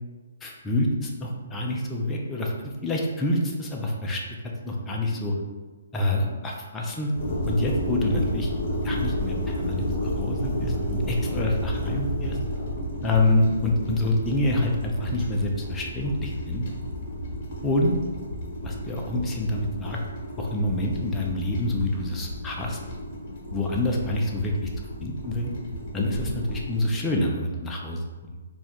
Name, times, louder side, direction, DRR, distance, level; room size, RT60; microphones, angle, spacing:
voice 1, 0.4-5.3 5.9-7.1 7.4-8.5 8.8-12.4 13.0-16.7 17.6-17.9 18.6-20.0 20.4-22.8 23.5-24.7 25.0-25.5 25.9-28.0, left 1 dB, 10° left, -2 dB, 0.5 m, -27 dB
sound 1, 7.2-26.9, equal, 40° left, 1.2 m, -32 dB
3.4 x 2.4 x 4.3 m, 1.3 s
hypercardioid pair, 160°, 0 cm